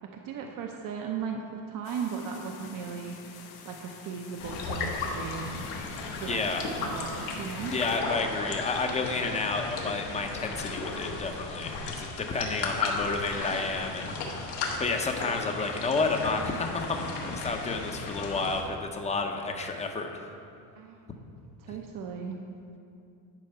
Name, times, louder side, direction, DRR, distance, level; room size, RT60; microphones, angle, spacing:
voice 1, 0.0-3.2 3.6-5.7 6.2-7.8 20.8-21.2 21.6-22.4, right 6 dB, 55° right, 2 dB, 0.8 m, -37 dB
sound 1, 1.8-8.0, left 6 dB, 70° left, 1.0 m, -49 dB
sound 2, 4.4-18.6, left 3 dB, 85° left, 1.4 m, -35 dB
voice 2, 6.3-6.7 7.7-14.3 14.8-20.2, left 3 dB, 15° left, 4 dB, 0.7 m, -31 dB
10.5 x 4.4 x 5.6 m, 2.5 s
cardioid pair, 130°, 39 cm